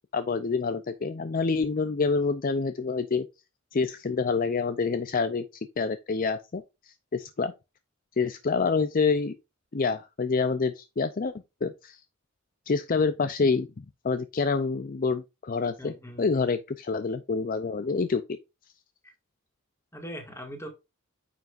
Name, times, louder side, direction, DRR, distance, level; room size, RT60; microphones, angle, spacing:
voice 1, 0.1-3.2 3.7-5.5 5.8-7.5 8.2-9.3 9.7-11.3 11.6-12.0 12.7-18.2, left 4 dB, 40° left, 0.5 m, -27 dB
voice 2, 15.8-16.6 19.0-19.1 19.9-20.7, equal, 15° left, 2.0 m, -41 dB
9.2 x 5.8 x 2.5 m
head